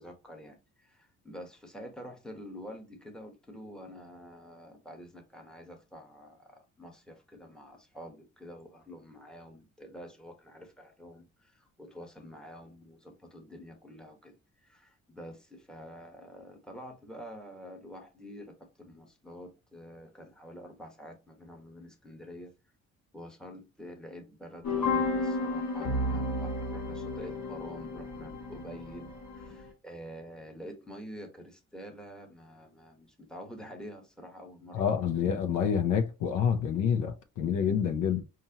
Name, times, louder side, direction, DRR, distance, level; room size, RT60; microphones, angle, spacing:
voice 1, 0.0-22.5 23.1-34.9 37.6-37.9, equal, ahead, 1.1 m, -47 dB
sound 1, 24.6-29.6, left 2 dB, 70° left, 1.4 m, -32 dB
voice 2, 34.7-38.2, left 7 dB, 85° left, 0.7 m, -27 dB
4.2 x 2.6 x 2.8 m
cardioid pair, 90°, 30 cm